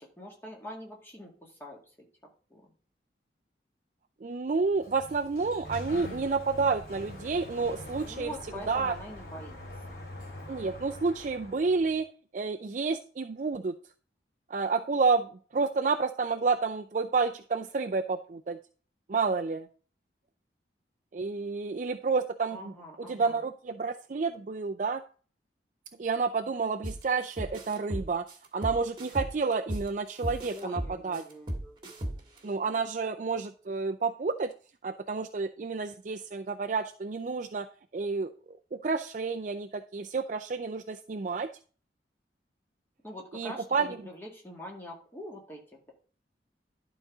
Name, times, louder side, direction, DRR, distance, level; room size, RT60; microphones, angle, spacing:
voice 1, 0.0-2.1 2.5-2.7 8.0-9.6 9.9-10.0 22.5-23.4 30.5-32.3 32.6-32.8 43.0-45.9, equal, 15° left, -1 dB, 2.1 m, -45 dB
voice 2, 4.2-8.3 8.7-8.9 10.5-12.1 12.3-13.7 14.5-18.6 19.1-19.7 21.1-22.7 23.1-25.0 26.0-28.2 28.5-31.2 32.4-34.5 34.8-37.7 37.9-41.5 43.3-43.9, right 4 dB, 45° right, 6 dB, 0.4 m, -30 dB
Sliding door, 4.6-12.0, left 1 dB, 55° left, 2.9 m, -44 dB
sound 1, 26.8-27.0 27.4-29.9 30.2-32.4, right 1 dB, 25° right, 1.7 m, -35 dB
11.5 x 4.0 x 4.9 m, 0.40 s
head